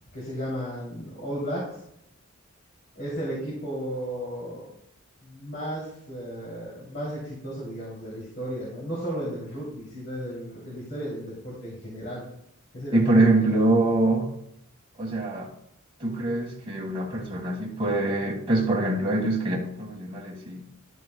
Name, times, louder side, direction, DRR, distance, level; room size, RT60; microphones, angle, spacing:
voice 1, 0.1-1.6 2.9-4.7 5.2-12.3 12.7-13.5 17.1-17.2, equal, 45° left, -5 dB, 2.9 m, -34 dB
voice 2, 12.9-14.3 15.0-15.5 16.0-20.6, right 2 dB, 25° right, -4 dB, 1.6 m, -24 dB
12.5 x 7.9 x 2.2 m, 0.74 s
head